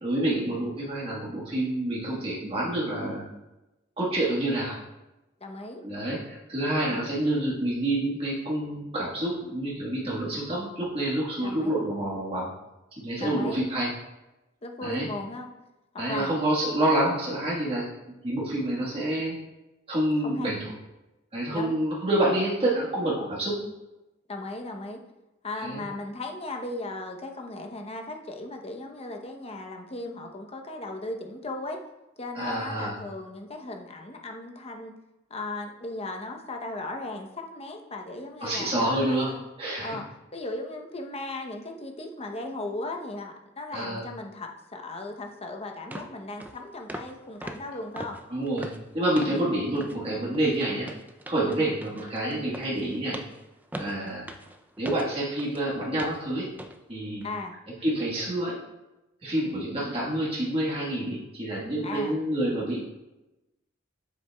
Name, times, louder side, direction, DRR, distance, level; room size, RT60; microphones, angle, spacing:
voice 1, 0.0-3.2 4.0-4.8 5.8-12.5 13.0-13.9 14.8-15.1 16.0-17.9 18.2-19.3 19.9-20.7 21.3-23.6 25.6-25.8 32.3-33.0 38.4-39.3 39.6-40.0 43.7-44.0 48.3-48.7 48.9-50.9 51.3-53.2 53.8-54.2 54.8-56.5 56.9-57.2 57.8-58.5 59.2-62.8, right 1 dB, 30° right, -6 dB, 1.5 m, -28 dB
voice 2, 5.4-5.8 6.9-7.1 11.4-11.7 13.2-13.6 14.6-15.5 16.1-16.4 20.2-20.5 21.5-21.8 24.3-25.0 25.4-31.8 32.2-34.9 35.3-39.4 39.8-40.0 40.3-48.2 49.2-49.5 53.8-54.1 57.2-57.5 59.3-59.4 61.8-62.2, left 2 dB, 30° left, 3 dB, 0.8 m, -37 dB
sound 1, 45.3-45.4 45.9-46.1 46.4-46.6 46.9-47.2 47.4-49.5 49.8-50.0 50.3-55.6 56.0-56.2 56.6-56.8 57.2-57.4, right 1 dB, 10° right, 0.4 m, -41 dB
7.8 x 7.3 x 2.3 m, 0.99 s
head